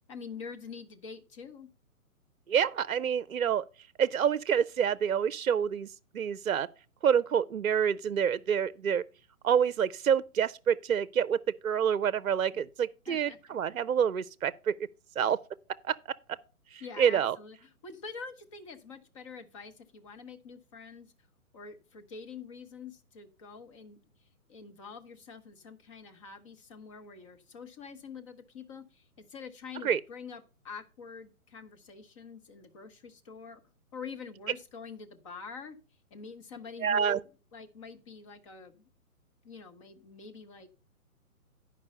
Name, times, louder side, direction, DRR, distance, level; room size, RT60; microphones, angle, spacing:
voice 1, 0.1-1.7 12.5-12.6 13.1-13.6 16.8-21.1 21.5-24.0 24.5-33.6 33.9-35.8 36.1-38.9 39.4-40.7, left 5 dB, 20° left, 0.9 m, -46 dB
voice 2, 2.5-3.6 4.0-5.9 6.1-6.7 7.0-9.0 9.4-14.8 15.2-15.4 15.8-16.1 16.7-17.4 29.8-30.0 36.8-37.2, right 8 dB, 65° right, 0.6 m, -27 dB
10.5 x 5.4 x 5.3 m
figure-of-eight pair, 130°, 44 cm